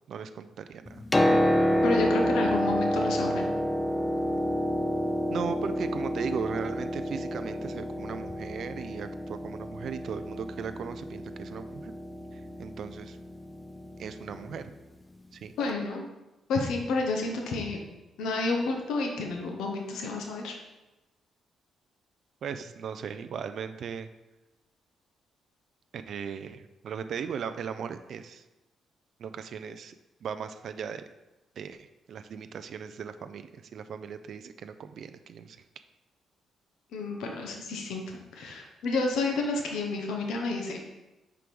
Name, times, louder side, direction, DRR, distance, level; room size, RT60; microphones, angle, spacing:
voice 1, 0.1-1.0 5.3-11.9 12.3-13.2 14.0-14.7 15.3-15.5 22.4-24.1 25.9-28.4 29.2-29.9 30.2-31.0 31.6-35.6, right 7 dB, 65° right, 10 dB, 0.3 m, -38 dB
Piano, 0.9-14.6 15.7-15.8, equal, 20° left, 0.5 m, -29 dB
voice 2, 1.8-3.5 15.6-16.1 16.5-17.8 18.2-20.5 36.9-38.0 38.3-40.8, left 3 dB, 80° left, 2 dB, 0.9 m, -30 dB
4.8 x 4.6 x 5.2 m, 1.0 s
supercardioid pair, 60°, 0 cm